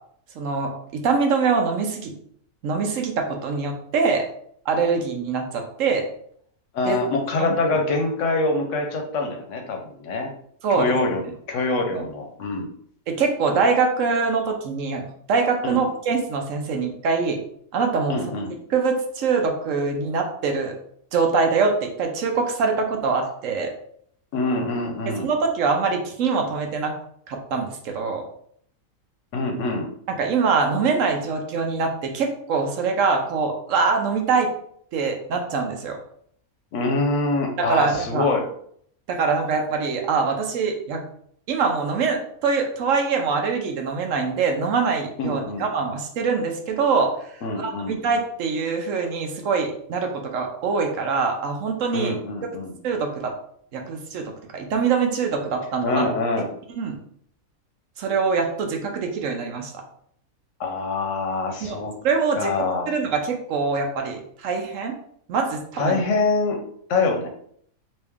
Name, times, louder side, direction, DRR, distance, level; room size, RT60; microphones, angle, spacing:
voice 1, 0.4-2.1 2.6-4.2 4.7-6.0 6.8-7.0 7.4-7.6 10.6-11.0 11.9-12.0 13.1-17.4 17.7-18.2 18.7-20.7 21.1-23.7 25.1-26.9 27.3-28.2 30.2-34.5 34.9-36.0 37.6-38.3 39.1-41.0 41.5-47.1 47.5-52.1 52.8-53.3 53.7-56.1 56.8-57.0 58.0-59.8 61.6-61.8 62.0-65.0 65.3-66.0, right 4 dB, 70° right, 3 dB, 0.9 m, -24 dB
voice 2, 6.7-10.3 10.7-11.2 11.5-12.7 15.6-15.8 18.1-18.5 24.3-25.3 29.3-29.9 36.7-38.4 45.2-45.7 47.4-48.0 51.9-52.7 55.8-56.5 60.6-61.9 62.3-62.9 65.8-66.6 66.9-67.3, left 3 dB, 65° left, 3 dB, 0.9 m, -25 dB
3.1 x 2.7 x 3.5 m, 0.65 s
omnidirectional pair, 1.5 m